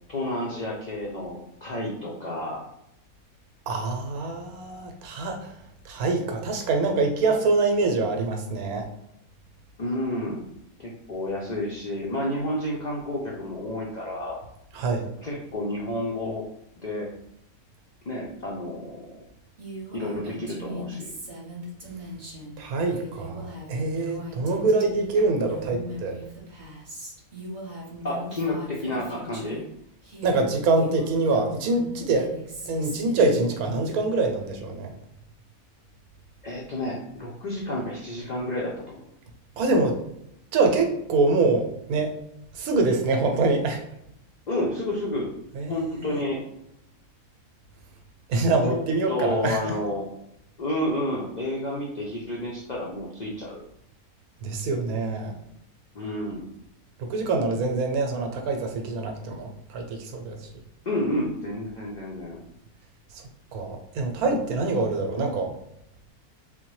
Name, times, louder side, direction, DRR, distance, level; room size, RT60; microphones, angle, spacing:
voice 1, 0.1-2.6 9.8-10.4 10.8-14.4 15.2-16.5 16.8-17.1 18.1-19.1 19.9-21.1 28.0-29.6 36.4-39.0 44.5-45.3 45.7-46.4 48.7-48.8 49.1-50.1 50.6-53.6 55.9-56.4 60.9-62.4, left 1 dB, 80° left, -3 dB, 0.4 m, -30 dB
voice 2, 3.7-5.5 5.8-8.9 14.7-15.1 22.6-26.2 30.2-32.3 32.7-34.9 39.6-40.0 40.5-42.1 42.5-43.8 45.5-46.2 48.3-49.7 54.4-55.3 57.0-60.5 63.1-63.2 63.5-65.5, right 3 dB, 85° right, 4 dB, 1.1 m, -25 dB
Female speech woman speaking, 19.6-29.7 30.0-33.9, equal, 40° right, 0.8 m, -40 dB
3.4 x 2.1 x 3.1 m, 0.78 s
omnidirectional pair, 1.5 m